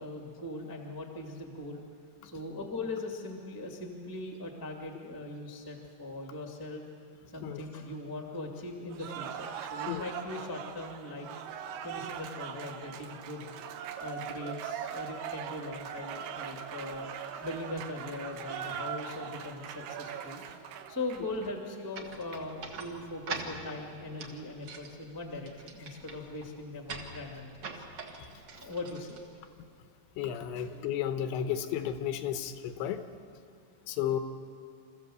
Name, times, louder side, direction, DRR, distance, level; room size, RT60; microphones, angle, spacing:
voice 1, 0.0-1.8 2.2-6.8 7.3-11.3 11.8-13.5 14.0-17.1 17.4-27.8 28.5-29.2 30.5-30.7, left 2 dB, 10° left, 2 dB, 1.1 m, -40 dB
Cheering / Applause, 8.9-21.5, right 8 dB, 85° right, 3.4 m, -40 dB
sound 1, 21.9-29.8, right 4 dB, 55° right, 1.8 m, -44 dB
voice 2, 30.2-33.0 33.9-34.2, left 10 dB, 80° left, 9 dB, 3.2 m, -33 dB
27.0 x 14.5 x 8.0 m, 2.4 s
omnidirectional pair, 5.3 m